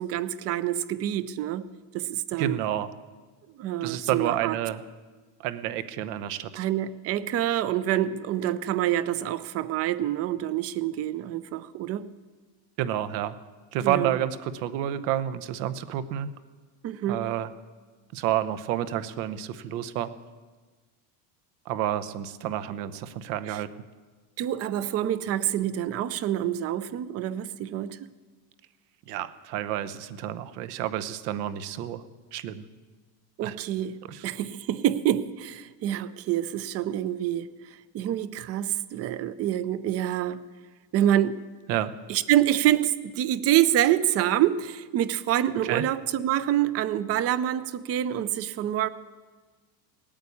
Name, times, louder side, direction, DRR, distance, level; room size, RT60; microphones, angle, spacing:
voice 1, 0.0-1.7 1.9-2.6 3.6-4.6 6.6-12.1 13.8-14.1 16.8-17.2 23.5-23.6 24.4-28.0 33.4-33.9 34.2-37.5 37.9-40.4 40.9-41.4 42.1-48.9, right 12 dB, 30° right, 17 dB, 0.5 m, -26 dB
voice 2, 2.4-2.9 3.8-4.8 5.4-6.7 12.8-13.4 13.7-16.3 17.1-17.5 18.1-20.1 21.7-23.7 29.1-32.0 32.3-32.6 33.4-33.6 34.1-34.3 41.7-41.9 45.6-45.8, right 11 dB, 75° right, 13 dB, 1.1 m, -29 dB
18.0 x 8.9 x 8.4 m, 1.4 s
cardioid pair, 155°, 48 cm